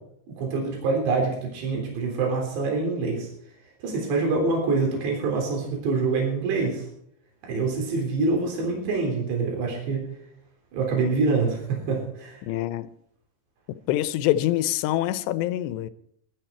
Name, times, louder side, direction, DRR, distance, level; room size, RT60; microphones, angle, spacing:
voice 1, 0.3-3.3 3.8-6.9 7.4-10.0 10.7-12.4, right 4 dB, 75° right, 5.8 m, -25 dB
voice 2, 12.4-12.9 13.7-15.9, left 14 dB, 80° left, 2.8 m, -25 dB
18.0 x 12.5 x 4.5 m
omnidirectional pair, 5.1 m